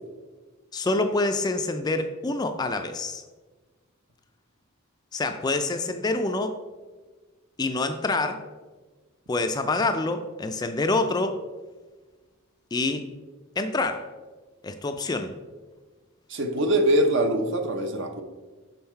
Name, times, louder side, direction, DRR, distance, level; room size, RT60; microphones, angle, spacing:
voice 1, 0.7-3.2 5.1-6.6 7.6-8.5 9.3-11.4 12.7-13.1 13.6-14.1 14.6-15.3, left 2 dB, 20° left, 7 dB, 0.3 m, -26 dB
voice 2, 16.3-18.2, right 1 dB, 55° right, 6 dB, 0.8 m, -23 dB
6.4 x 5.5 x 4.4 m, 1.3 s
head